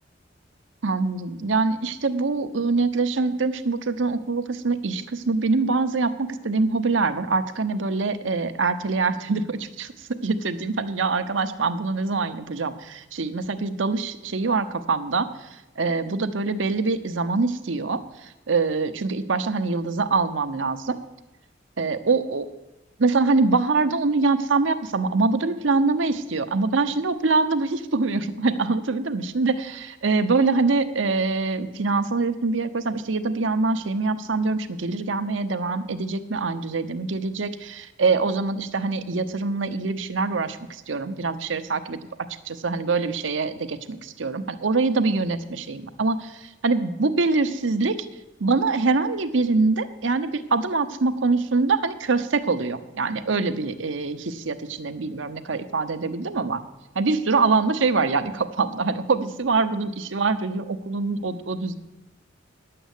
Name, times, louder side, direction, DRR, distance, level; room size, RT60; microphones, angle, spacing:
voice 1, 0.8-15.3 15.8-21.0 21.8-22.5 23.0-42.0 42.4-48.1 48.4-56.6 56.9-61.8, right 3 dB, 90° right, 9 dB, 0.9 m, -24 dB
10.5 x 7.7 x 8.3 m, 1.0 s
head